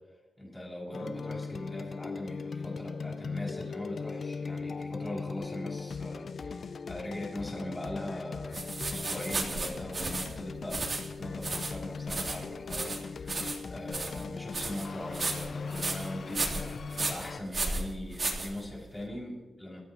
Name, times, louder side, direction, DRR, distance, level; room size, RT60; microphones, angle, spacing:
voice 1, 0.4-8.6 8.9-10.8 11.2-19.8, left 1 dB, 15° left, -3 dB, 6.0 m, -40 dB
sound 1, 0.9-17.4, left 5 dB, 55° left, 0.6 m, -39 dB
sound 2, 8.5-19.0, right 3 dB, 35° right, 3.3 m, -35 dB
28.5 x 14.5 x 3.0 m, 1.3 s
wide cardioid pair, 125°, 0 cm